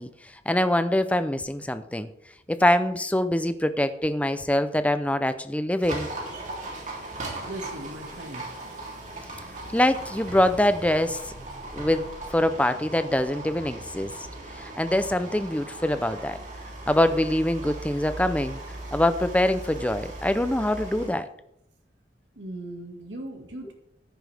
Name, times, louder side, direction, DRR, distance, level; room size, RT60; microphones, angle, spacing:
voice 1, 0.0-2.1 2.5-6.1 9.7-11.3 11.7-14.3 14.5-16.4 16.9-18.6 18.9-21.3, left 1 dB, 10° left, 11 dB, 0.5 m, -24 dB
Livestock farm animals working animals, 5.8-21.1, right 2 dB, 40° right, 3.1 m, -38 dB
voice 2, 7.5-8.5 22.4-23.7, right 1 dB, 80° right, 1 dB, 2.0 m, -38 dB
14.0 x 10.5 x 3.5 m, 0.80 s
head